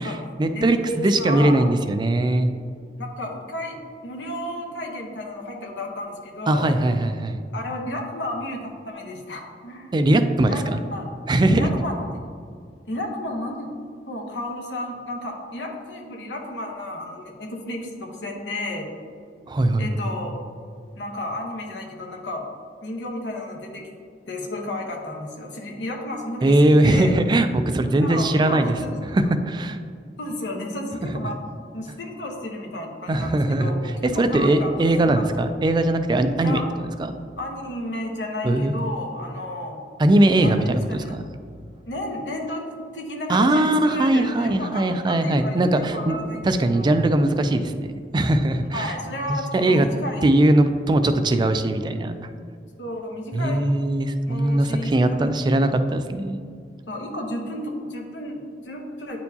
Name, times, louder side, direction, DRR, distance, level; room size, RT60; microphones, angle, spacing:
voice 1, 0.0-2.5 6.5-7.4 9.9-10.8 11.3-11.7 19.5-19.9 26.4-28.7 29.1-29.8 33.1-36.6 37.0-37.1 38.4-38.7 40.0-41.2 43.3-46.2 46.4-48.9 49.5-49.9 50.2-52.2 53.3-56.4, right 1 dB, 25° right, 9 dB, 0.3 m, -20 dB
voice 2, 0.5-1.6 3.0-6.8 7.5-9.9 10.4-10.6 10.9-11.1 11.5-12.2 12.9-13.7 14.1-18.9 19.8-20.4 21.0-22.5 22.8-23.9 24.3-27.2 27.9-28.7 30.2-31.4 31.7-33.8 34.1-34.9 35.2-35.3 36.4-36.7 37.4-39.8 40.4-41.2 41.9-46.4 46.7-47.0 48.7-50.2 52.8-53.7 54.3-55.3 56.9-59.2, left 1 dB, 80° left, 1 dB, 1.0 m, -32 dB
9.3 x 4.4 x 2.8 m, 2.2 s
head